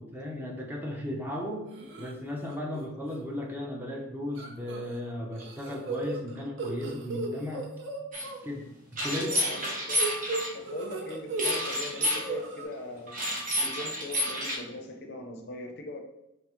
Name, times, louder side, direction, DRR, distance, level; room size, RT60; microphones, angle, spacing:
voice 1, 0.0-1.7 2.0-7.7 8.4-8.7 9.0-9.3, left 1 dB, 10° right, -1 dB, 0.5 m, -35 dB
sound 1, 1.7-2.1 2.5-2.8 3.1-3.2 4.4-5.0 5.3-8.4 9.5-11.6 11.8-12.6, right 3 dB, 65° right, 0.6 m, -36 dB
sound 2, 8.1-8.2 9.0-10.5 11.4-12.2 13.1-14.6, equal, 45° right, 1.0 m, -29 dB
voice 2, 9.2-10.0 10.5-13.2 13.6-16.0, left 1 dB, 55° left, 4 dB, 0.5 m, -40 dB
5.6 x 2.0 x 2.9 m, 0.94 s
head